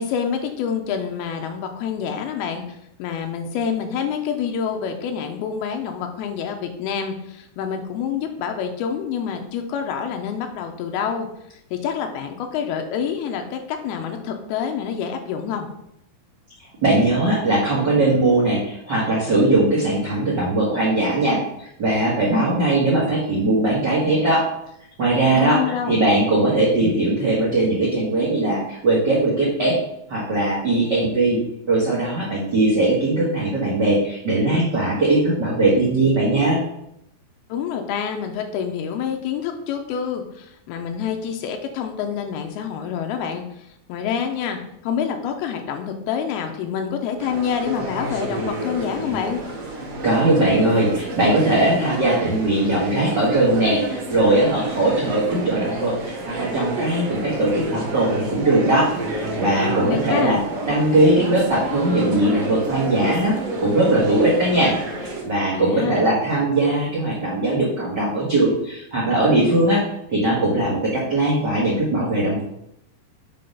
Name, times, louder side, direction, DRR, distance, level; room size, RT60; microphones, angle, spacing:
voice 1, 0.0-11.3 11.7-15.7 25.3-26.0 37.5-49.4 59.8-60.4 65.5-66.1, left 7 dB, 85° left, 4 dB, 2.6 m, -27 dB
voice 2, 16.8-24.4 25.0-29.7 30.1-31.4 31.7-36.6 50.0-60.4 60.6-69.8 70.1-72.4, right 2 dB, 75° right, -6 dB, 1.0 m, -20 dB
sound 1, 47.2-65.2, right 2 dB, 55° right, 1.9 m, -30 dB
6.7 x 3.8 x 5.4 m, 0.78 s
omnidirectional pair, 4.5 m